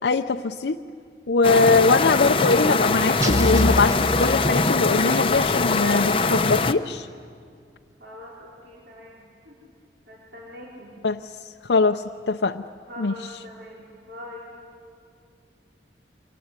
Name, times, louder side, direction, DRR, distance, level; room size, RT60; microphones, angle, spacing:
voice 1, 0.0-0.8 1.3-7.1 11.0-11.2 11.7-12.6 13.0-13.1, left 4 dB, 75° left, 4 dB, 0.6 m, -21 dB
sound 1, 1.4-6.7, left 3 dB, 30° left, 0.7 m, -22 dB
sound 2, 3.2-5.1, equal, 20° right, 1.4 m, -25 dB
voice 2, 8.0-9.6 10.1-11.0 12.9-14.5, left 1 dB, 75° right, -5 dB, 4.6 m, -42 dB
27.0 x 23.0 x 9.7 m, 2.3 s
head